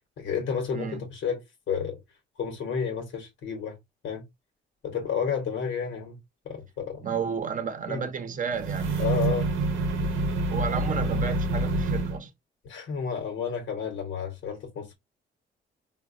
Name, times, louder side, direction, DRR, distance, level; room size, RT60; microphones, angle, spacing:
voice 1, 0.2-1.4 1.7-2.0 2.4-3.8 4.0-4.2 4.8-6.2 6.4-7.1 7.9-8.1 9.0-9.5 12.6-14.9, left 7 dB, 70° left, 1.0 m, -31 dB
voice 2, 0.7-1.1 7.0-9.0 10.5-12.3, right 6 dB, 40° right, 0.7 m, -32 dB
sound 1, 8.5-12.2, right 2 dB, 90° right, 0.7 m, -27 dB
3.8 x 2.2 x 2.5 m
cardioid pair, 90°, 20 cm